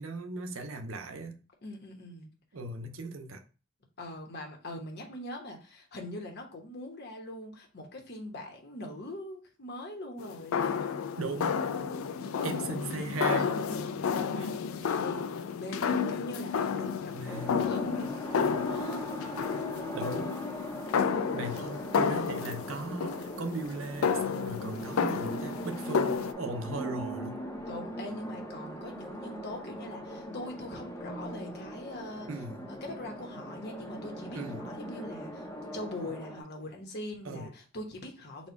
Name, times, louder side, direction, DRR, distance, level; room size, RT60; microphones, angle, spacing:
voice 1, 0.0-1.4 2.5-3.4 11.2-11.6 12.4-13.5 14.3-14.5 17.1-17.7 19.9-20.4 21.3-27.4 32.3-32.7 34.3-34.7 37.2-37.5, right 2 dB, 75° right, 0.6 m, -37 dB
voice 2, 1.6-2.3 4.0-10.8 12.2-12.8 13.4-19.2 27.6-32.3 32.7-38.5, left 1 dB, 55° left, 1.0 m, -42 dB
sound 1, 10.2-26.3, left 6 dB, 80° left, 0.4 m, -31 dB
sound 2, 17.3-36.4, equal, 15° left, 0.7 m, -40 dB
4.2 x 2.3 x 4.4 m
head